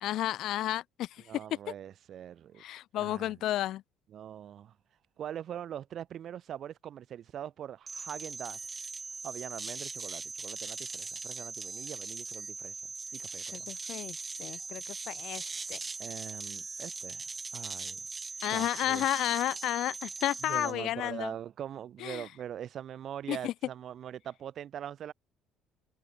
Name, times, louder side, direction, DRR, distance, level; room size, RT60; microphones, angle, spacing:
voice 1, 0.0-1.4 2.6-3.8 13.5-15.4 15.7-15.8 18.4-21.3 22.0-22.3 23.3-23.5, left 13 dB, 60° left, 0.8 m, -32 dB
voice 2, 1.3-2.6 2.9-3.3 4.1-4.7 5.2-8.6 9.2-12.8 13.1-13.7 16.0-17.2 17.5-18.0 18.5-19.0 20.4-25.1, right 10 dB, 45° right, 5.5 m, -42 dB
sound 1, 7.9-20.7, right 4 dB, 20° right, 1.6 m, -40 dB
cardioid pair, 130°, 0 cm